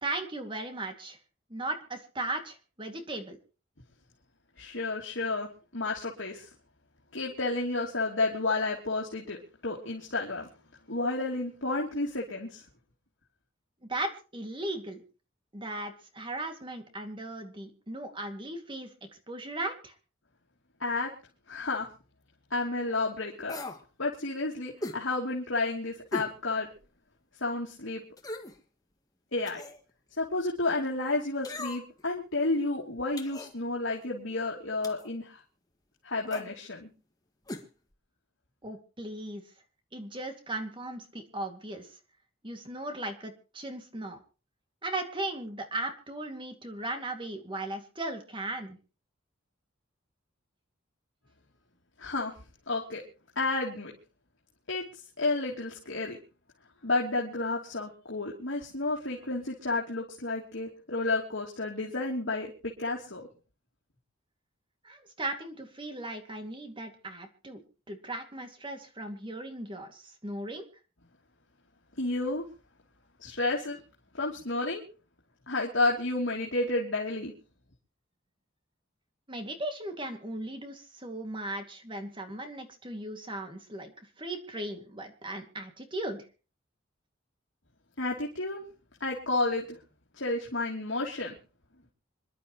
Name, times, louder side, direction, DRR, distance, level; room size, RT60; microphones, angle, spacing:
voice 1, 0.0-1.2 1.5-3.4 13.9-15.0 15.5-18.9 19.3-19.9 38.6-39.4 39.9-41.9 42.4-44.2 44.8-48.8 64.8-67.6 67.9-70.7 79.3-83.9 84.2-86.2, right 2 dB, 25° right, 5 dB, 2.3 m, -37 dB
voice 2, 4.6-6.5 7.1-9.4 9.6-10.5 10.9-12.6 20.8-21.1 21.5-21.9 22.5-23.5 24.0-26.7 27.4-28.0 29.3-29.6 30.2-35.4 36.0-36.9 52.0-52.3 52.7-53.0 53.3-53.9 54.7-56.2 56.8-63.3 72.0-72.4 73.2-73.8 74.1-74.8 75.5-77.3 88.0-88.6 89.0-89.6 90.2-91.3, left 2 dB, 70° left, -3 dB, 3.0 m, -31 dB
sound 1, 23.5-23.8 24.8-25.0 26.1-26.3 26.8-26.9 28.2-28.6 29.5-29.8 31.4-32.0 33.2-33.5 34.8-35.1 36.3-36.5 37.5-37.7 37.9-38.0, left 2 dB, 20° left, 1.8 m, -38 dB
27.0 x 11.5 x 3.1 m, 0.35 s
head